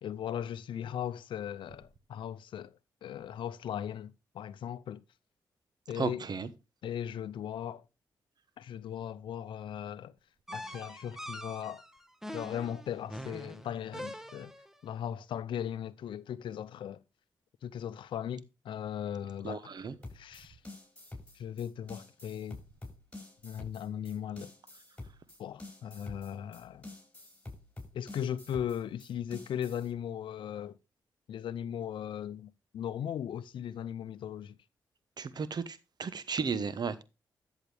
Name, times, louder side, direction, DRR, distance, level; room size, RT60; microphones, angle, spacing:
voice 1, 0.0-5.0 5.9-6.2 6.8-7.8 8.6-10.1 10.5-11.8 12.3-14.5 14.8-17.0 17.6-19.7 20.1-20.6 21.3-22.6 23.4-24.5 25.4-26.9 27.9-30.8 31.3-34.6, left 9 dB, 75° left, 0.6 m, -38 dB
voice 2, 6.0-6.5 19.4-19.9 35.2-37.0, right 5 dB, 55° right, 1.1 m, -34 dB
sound 1, 10.5-14.8, equal, 5° right, 1.3 m, -44 dB
sound 2, 20.0-29.9, left 2 dB, 15° left, 6.4 m, -48 dB
13.5 x 7.3 x 3.4 m
supercardioid pair, 50°, 8 cm